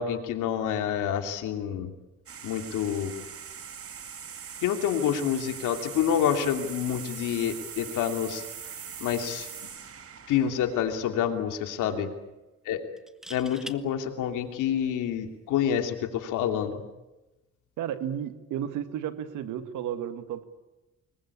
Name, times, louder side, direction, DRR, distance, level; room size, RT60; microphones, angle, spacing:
voice 1, 0.0-1.9 2.4-3.1 4.6-8.4 9.0-9.5 10.3-12.1 12.6-12.8 13.3-16.8, left 9 dB, 90° left, 5 dB, 2.9 m, -28 dB
sound 1, 2.3-11.4, right 7 dB, 50° right, 2.0 m, -42 dB
sound 2, 10.1-10.4 10.7-10.8 13.0-13.8 15.6-15.8, equal, ahead, 1.5 m, -43 dB
voice 2, 17.8-20.4, right 10 dB, 90° right, 10 dB, 1.9 m, -33 dB
25.5 x 22.5 x 8.5 m, 1.0 s
cardioid pair, 90°, 30 cm